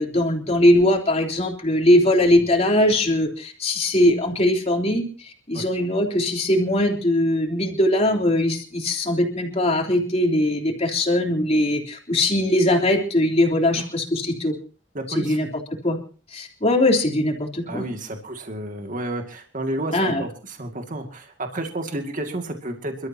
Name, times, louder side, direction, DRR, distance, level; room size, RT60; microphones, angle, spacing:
voice 1, 0.0-14.5 15.2-15.5 15.8-16.0 16.3-17.9 19.9-20.2, left 1 dB, 35° left, 1 dB, 3.3 m, -20 dB
voice 2, 14.9-15.4 17.7-23.1, right 1 dB, 45° right, 4 dB, 2.3 m, -31 dB
29.0 x 13.5 x 2.9 m, 0.37 s
head